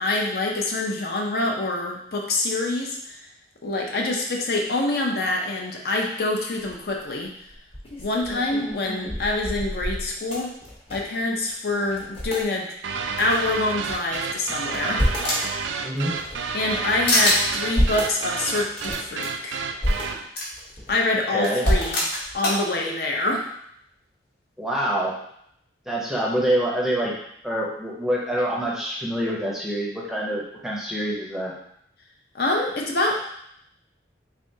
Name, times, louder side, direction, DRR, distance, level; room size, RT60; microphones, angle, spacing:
voice 1, 0.0-3.2 3.6-7.3 8.0-10.5 10.9-12.7 13.2-15.0 16.5-19.6 20.9-22.0 22.3-23.4 32.3-33.1, left 2 dB, 55° left, 0 dB, 0.5 m, -25 dB
sound 1, 6.6-7.0 7.5-11.2 11.5-11.6 11.9-12.5 13.1-14.2 14.6-15.4 16.0-16.9 17.4-18.1 18.7-19.1 19.6-20.0 20.5-21.2 21.6-22.4, equal, 30° left, 0.9 m, -28 dB
sound 2, 12.8-20.3, right 5 dB, 80° right, 0.3 m, -30 dB
sound 3, 14.2-15.6 16.1-16.8 17.1-17.4 18.9-19.0 19.2-19.3 20.3-20.5 21.4-22.6, left 1 dB, 80° left, 1.2 m, -24 dB
voice 2, 15.8-16.1 21.3-21.6 24.6-25.1 25.9-27.1 27.4-31.5, right 1 dB, ahead, -4 dB, 0.6 m, -26 dB
3.6 x 3.3 x 2.7 m, 0.71 s
head